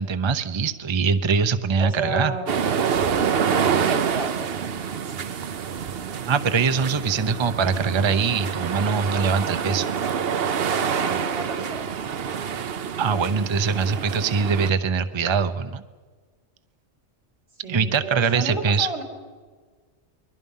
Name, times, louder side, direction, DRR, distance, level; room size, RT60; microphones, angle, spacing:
voice 1, 0.0-2.3 6.3-9.9 13.0-15.8 17.7-18.9, right 5 dB, 30° right, 10 dB, 0.7 m, -23 dB
voice 2, 1.8-2.5 3.6-5.1 10.8-11.9 17.6-19.0, right 2 dB, 85° right, 3 dB, 3.8 m, -32 dB
sound 1, 2.5-14.7, right 7 dB, 60° right, 1.0 m, -26 dB
29.0 x 22.0 x 5.6 m, 1.5 s
omnidirectional pair, 1.2 m